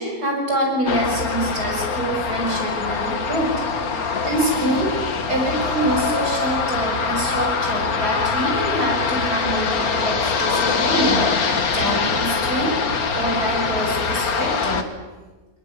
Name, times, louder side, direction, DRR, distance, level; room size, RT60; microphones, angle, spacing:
voice 1, 0.0-3.5 3.9-4.9 5.3-12.8 13.1-14.9, right 1 dB, 80° right, 0 dB, 7.8 m, -25 dB
sound 1, 0.9-14.8, left 5 dB, 70° left, 2.1 m, -23 dB
23.5 x 21.0 x 9.8 m, 1.2 s
omnidirectional pair, 1.6 m